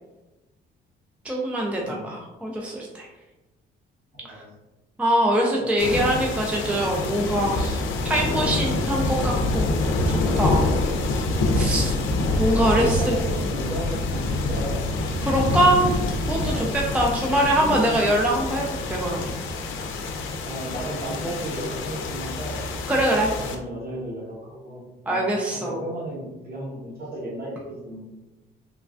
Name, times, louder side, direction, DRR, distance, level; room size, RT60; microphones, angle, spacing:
voice 1, 1.2-3.1 4.3-4.4 5.0-7.8 8.1-9.6 10.1-10.6 11.5-11.9 12.4-13.1 15.3-15.9 16.3-19.3 22.9-23.3 25.1-25.8, right 1 dB, 5° right, -1 dB, 0.4 m, -23 dB
voice 2, 4.1-4.5 5.7-5.8 12.5-14.8 16.5-16.7 17.3-18.0 20.4-22.6 23.4-28.1, right 1 dB, 50° right, -5 dB, 1.3 m, -34 dB
sound 1, 5.8-23.6, left 2 dB, 80° left, 0.4 m, -26 dB
3.1 x 2.2 x 2.4 m, 1.1 s
cardioid pair, 90°, 20 cm